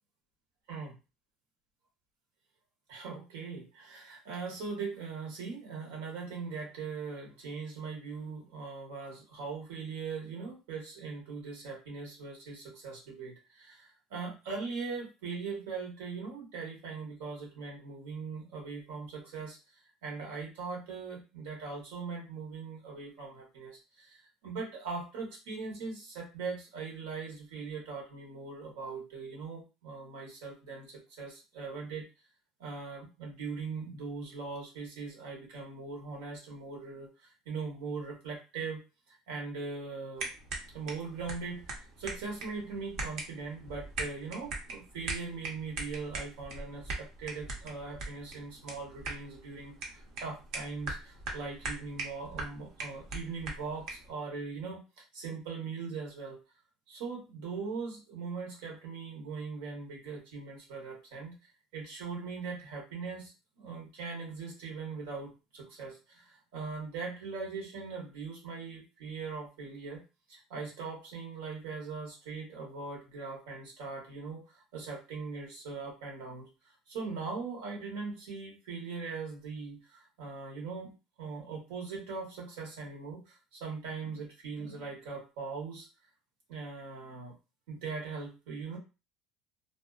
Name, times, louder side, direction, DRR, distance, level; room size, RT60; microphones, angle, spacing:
voice 1, 2.9-19.6 20.0-32.1 32.6-40.3 40.7-56.4 56.9-61.4 61.7-70.0 70.3-76.5 76.9-80.9 81.2-85.9 86.5-87.4 87.7-88.8, right 4 dB, 85° right, -1 dB, 1.2 m, -40 dB
sound 1, 40.2-54.1, right 3 dB, 65° right, 0.8 m, -41 dB
2.6 x 2.2 x 2.4 m, 0.29 s
supercardioid pair, 110°, 0 cm